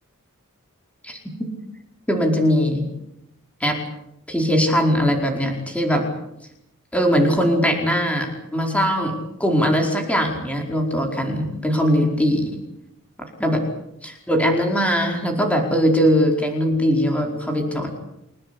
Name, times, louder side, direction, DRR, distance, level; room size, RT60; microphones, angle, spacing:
voice 1, 2.1-2.9 3.6-3.8 4.3-6.0 6.9-9.1 9.4-12.5 13.4-13.6 14.0-17.9, equal, 5° left, 2 dB, 4.8 m, -20 dB
30.0 x 17.5 x 8.5 m, 0.84 s
head